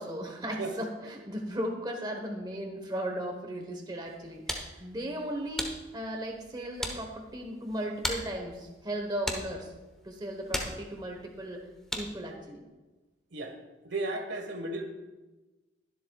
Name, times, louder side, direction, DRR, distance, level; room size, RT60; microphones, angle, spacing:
voice 1, 0.0-5.7 5.9-9.7 10.0-11.6 11.9-12.7, equal, 20° right, 2 dB, 1.0 m, -36 dB
sound 1, 4.1-12.3, equal, 5° left, 1.0 m, -40 dB
voice 2, 13.8-14.8, right 2 dB, 70° right, 5 dB, 1.4 m, -34 dB
21.5 x 7.6 x 2.3 m, 1.2 s
head